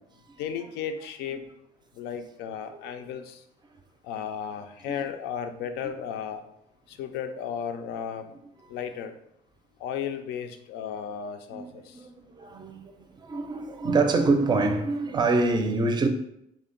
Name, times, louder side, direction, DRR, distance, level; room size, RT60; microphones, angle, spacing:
voice 1, 0.4-1.4 1.9-3.4 4.0-6.4 6.9-8.3 8.7-9.1 9.8-12.1, left 8 dB, 85° left, 0.4 m, -34 dB
voice 2, 11.5-16.1, right 3 dB, 25° right, 0.4 m, -26 dB
3.5 x 2.1 x 3.8 m
cardioid pair, 110°, 17 cm